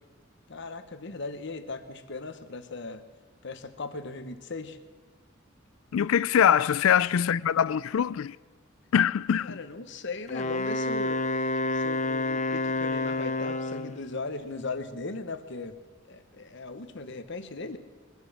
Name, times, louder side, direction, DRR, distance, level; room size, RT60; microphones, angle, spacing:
voice 1, 0.5-3.0 3.4-4.8 9.4-11.3 11.7-15.8 16.1-17.8, left 3 dB, 60° left, 1.1 m, -38 dB
voice 2, 5.9-8.4 8.9-9.6, left 8 dB, 80° left, 0.4 m, -23 dB
Wind instrument woodwind instrument, 10.3-14.0, left 2 dB, 35° left, 0.7 m, -29 dB
22.5 x 8.3 x 7.2 m
head